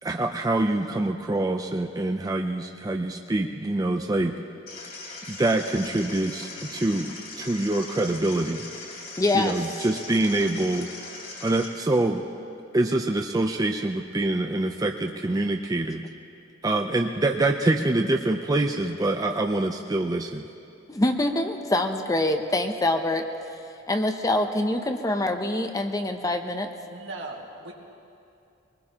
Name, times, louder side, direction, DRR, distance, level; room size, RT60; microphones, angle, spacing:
voice 1, 0.0-4.3 5.3-8.7 9.3-10.9 11.4-12.2 12.7-16.0 16.6-20.5, right 2 dB, 20° right, 3 dB, 0.4 m, -25 dB
sound 1, 4.7-11.7, left 3 dB, 45° left, 3.4 m, -40 dB
voice 2, 9.2-9.6 20.9-23.3 23.9-26.7, left 1 dB, 20° left, 6 dB, 0.6 m, -25 dB
voice 3, 26.9-27.7, right 2 dB, 75° right, 0 dB, 1.8 m, -38 dB
23.0 x 20.0 x 2.9 m, 2.6 s
head